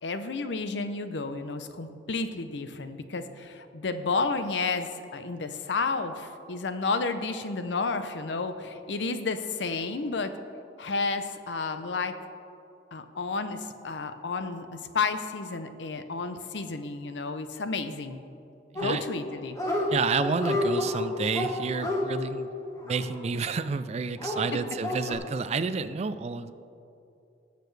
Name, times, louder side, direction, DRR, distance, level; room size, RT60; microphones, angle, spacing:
voice 1, 0.0-10.4 10.8-12.2 12.9-18.2 18.7-19.6 24.5-24.6, left 4 dB, 80° left, 9 dB, 0.7 m, -31 dB
Dog, 18.8-19.2 19.5-19.9 20.2-23.6 24.2-25.1, left 1 dB, 20° left, 1.3 m, -30 dB
voice 2, 19.9-22.5 22.8-26.5, right 4 dB, 35° right, 12 dB, 0.4 m, -30 dB
19.5 x 6.8 x 3.3 m, 2.7 s
head